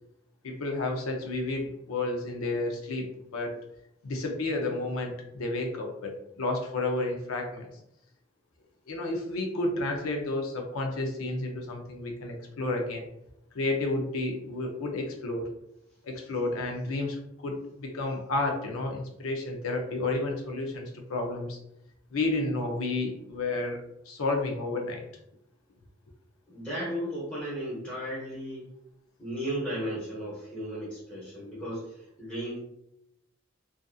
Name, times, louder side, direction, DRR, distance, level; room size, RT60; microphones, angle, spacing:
voice 1, 0.4-3.5 4.0-7.7 8.9-13.1 13.5-15.5 16.0-21.6 22.1-25.0, left 2 dB, 85° left, 2 dB, 0.5 m, -31 dB
voice 2, 26.5-28.7 29.2-32.6, equal, 5° left, -9 dB, 0.8 m, -35 dB
2.5 x 2.5 x 2.3 m, 0.80 s
head